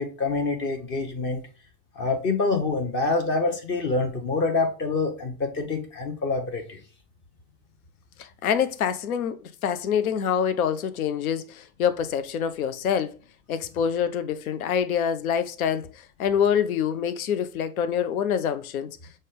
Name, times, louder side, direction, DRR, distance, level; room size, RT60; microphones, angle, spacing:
voice 1, 0.0-1.4 2.0-6.8, left 3 dB, 25° left, 0.7 m, -26 dB
voice 2, 8.2-13.2 13.5-19.0, left 8 dB, 70° left, 0.5 m, -26 dB
6.2 x 2.1 x 3.6 m
figure-of-eight pair, 85°, 45 cm